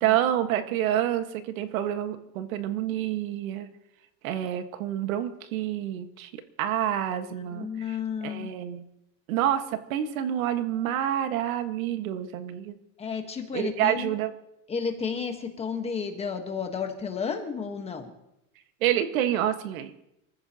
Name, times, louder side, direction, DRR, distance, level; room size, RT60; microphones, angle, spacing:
voice 1, 0.0-3.7 4.2-8.8 9.3-12.7 13.5-14.3 18.8-20.0, right 11 dB, 80° right, 8 dB, 1.7 m, -28 dB
voice 2, 7.3-8.5 13.0-14.2 14.7-18.1, left 6 dB, 15° left, 5 dB, 1.3 m, -32 dB
27.0 x 14.5 x 2.9 m, 0.85 s
supercardioid pair, 165°, 41 cm